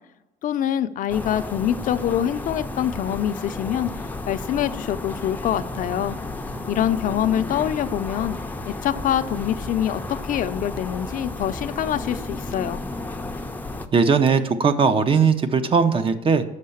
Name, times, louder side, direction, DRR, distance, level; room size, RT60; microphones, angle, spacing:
voice 1, 0.4-6.2 6.7-8.4 8.6-12.8, left 10 dB, 55° left, 10 dB, 0.5 m, -25 dB
sound 1, 1.1-13.9, left 2 dB, 10° left, 0.5 m, -33 dB
voice 2, 13.9-16.4, right 5 dB, 30° right, 10 dB, 0.6 m, -19 dB
6.6 x 5.5 x 7.0 m, 0.99 s
cardioid pair, 110°, 17 cm